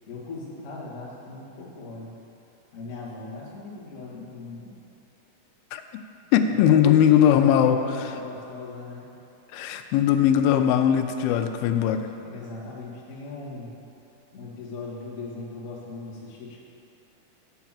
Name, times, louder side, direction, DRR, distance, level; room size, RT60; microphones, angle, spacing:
voice 1, 0.1-2.2 2.7-4.8 6.4-9.1 12.2-13.7 14.3-16.6, left 3 dB, 55° left, -6 dB, 0.8 m, -38 dB
voice 2, 6.3-8.1 9.5-12.1, left 9 dB, 85° left, 8 dB, 2.4 m, -20 dB
8.1 x 5.6 x 7.3 m, 2.8 s
omnidirectional pair, 4.3 m